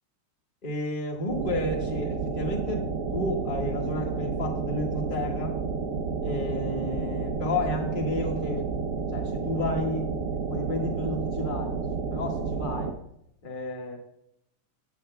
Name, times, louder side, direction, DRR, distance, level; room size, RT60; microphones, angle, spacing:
voice 1, 0.6-5.6 6.2-8.7 9.1-10.1 10.5-11.8 12.1-12.9 13.4-14.0, left 1 dB, 25° left, -1 dB, 1.7 m, -31 dB
sound 1, 1.3-12.9, right 5 dB, 60° right, 0.8 m, -31 dB
16.5 x 9.5 x 2.3 m, 0.75 s
omnidirectional pair, 2.4 m